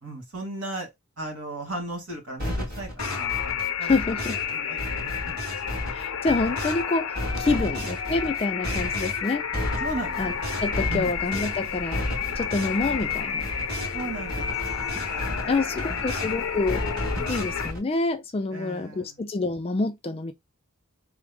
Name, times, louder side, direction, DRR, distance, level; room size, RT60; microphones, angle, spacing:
voice 1, 0.0-0.9 1.2-3.4 3.8-4.0 4.5-5.4 7.4-7.8 9.8-10.2 10.9-11.1 13.9-15.5 15.8-16.3 17.1-17.4 18.5-19.1, right 1 dB, 70° right, 1.7 m, -36 dB
sound 1, 2.4-4.5 4.8-6.8 7.1-14.0 14.3-16.3 16.7-17.8, left 1 dB, 45° right, 2.0 m, -33 dB
sound 2, 3.0-17.7, left 7 dB, 90° left, 0.6 m, -31 dB
voice 2, 3.8-4.4 5.9-9.4 10.2-10.3 10.6-12.0 12.4-13.5 15.5-16.8 17.3-20.3, left 3 dB, 25° left, 0.3 m, -27 dB
sound 3, 9.8-17.7, equal, 15° right, 0.7 m, -42 dB
3.5 x 2.0 x 3.3 m
head